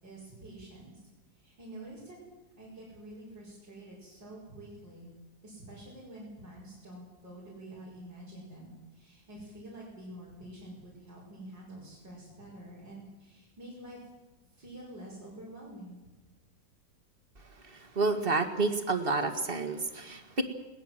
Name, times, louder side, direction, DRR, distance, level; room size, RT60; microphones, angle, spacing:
voice 1, 0.0-1.0 1.3-2.2 2.6-5.1 5.4-14.0 14.5-16.0, right 1 dB, 90° right, -6 dB, 6.6 m, -47 dB
voice 2, 18.0-20.4, right 3 dB, 30° right, 7 dB, 2.0 m, -29 dB
21.0 x 19.0 x 7.7 m, 1.1 s
omnidirectional pair, 1.9 m